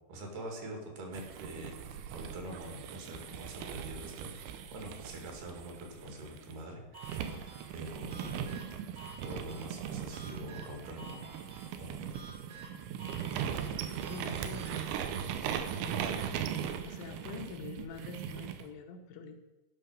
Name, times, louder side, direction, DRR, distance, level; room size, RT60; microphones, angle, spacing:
voice 1, 0.1-8.4 8.9-11.4 11.8-12.0, right 1 dB, 65° right, 1 dB, 4.0 m, -45 dB
sound 1, 1.1-6.5 7.0-18.6, right 8 dB, 85° right, 3.2 m, -39 dB
sound 2, 6.9-14.9, right 3 dB, 45° right, 1.1 m, -52 dB
voice 2, 14.1-16.1 16.8-19.4, left 3 dB, 85° left, 4 dB, 3.4 m, -46 dB
12.5 x 5.7 x 6.5 m, 1.1 s
omnidirectional pair, 5.3 m